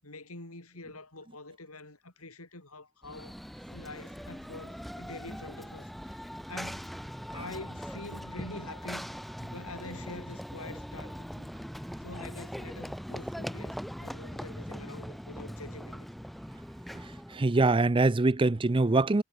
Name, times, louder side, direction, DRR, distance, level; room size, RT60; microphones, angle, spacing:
voice 1, 0.0-3.4 3.7-6.2 6.5-6.9 7.3-9.1 9.4-11.5 12.0-16.1, left 2 dB, 90° left, 6.6 m, -45 dB
Run / Train, 3.0-17.5, equal, ahead, 1.3 m, -41 dB
voice 2, 17.3-19.2, right 2 dB, 25° right, 0.5 m, -23 dB
head